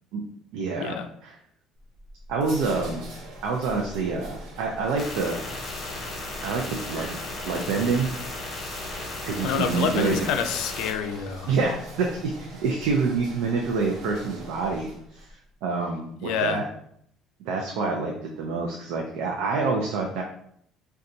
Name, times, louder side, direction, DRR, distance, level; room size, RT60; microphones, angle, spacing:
voice 1, 0.5-1.3 2.3-3.0 3.4-5.4 6.4-7.2 7.5-8.1 9.3-10.2 11.5-16.6 17.4-20.2, right 4 dB, 90° right, 0 dB, 0.4 m, -27 dB
sound 1, 1.7-15.3, right 1 dB, 75° right, 0.8 m, -43 dB
sound 2, 5.0-10.9, left 2 dB, 40° left, 0.8 m, -35 dB
voice 2, 9.4-11.5 16.2-16.6, left 7 dB, 80° left, 8 dB, 0.3 m, -27 dB
3.8 x 2.2 x 2.6 m, 0.69 s
cardioid pair, 155°, 0 cm